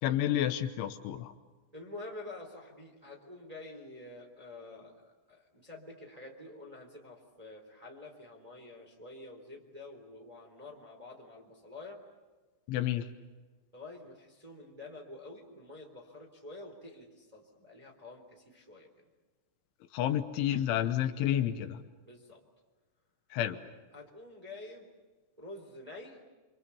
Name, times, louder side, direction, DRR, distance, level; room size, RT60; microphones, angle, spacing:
voice 1, 0.0-1.3 12.7-13.1 19.9-21.8 23.3-23.6, left 11 dB, 80° left, 8 dB, 3.4 m, -30 dB
voice 2, 1.7-5.0 5.3-12.0 13.7-18.9 22.0-22.4 23.9-24.9 25.4-26.2, left 2 dB, 10° right, 0 dB, 2.8 m, -48 dB
28.0 x 26.5 x 7.1 m, 1.3 s
omnidirectional pair, 5.7 m